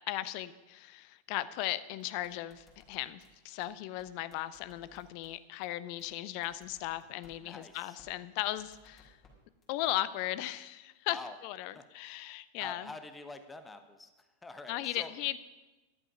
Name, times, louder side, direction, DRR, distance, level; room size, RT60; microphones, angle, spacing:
voice 1, 0.1-9.2 9.7-11.2 11.4-12.9 14.7-15.4, left 15 dB, 45° left, 16 dB, 0.6 m, -37 dB
sound 1, 2.0-3.3 3.6-3.7 4.0-4.1 4.3-5.3 5.6-5.7 6.0-6.1 6.4-7.3 7.6-7.7 8.0-8.1 8.4-9.3 9.6-9.9, left 5 dB, 30° left, 4.4 m, -62 dB
voice 2, 7.4-8.0 11.1-11.4 11.7-11.9 12.6-14.1 14.4-15.1, left 2 dB, 10° left, 9 dB, 1.0 m, -46 dB
13.5 x 11.5 x 5.5 m, 1.1 s
figure-of-eight pair, 90°, 0 cm